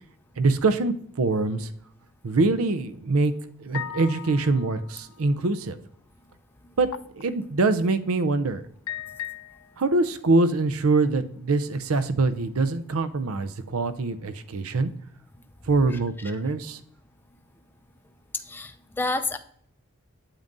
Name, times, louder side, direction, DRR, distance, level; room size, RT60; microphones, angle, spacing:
voice 1, 0.4-1.7 2.2-3.3 3.6-5.8 6.8-6.9 7.2-8.6 9.8-14.9 15.7-16.8, right 3 dB, 80° right, 12 dB, 0.6 m, -24 dB
sound 1, 3.7-5.2 6.9-7.2 7.9-8.1 8.9-9.9, left 11 dB, 75° left, 0.4 m, -37 dB
voice 2, 15.9-16.3 18.3-19.4, left 2 dB, 10° left, 7 dB, 0.4 m, -30 dB
8.8 x 7.5 x 2.6 m, 0.67 s
head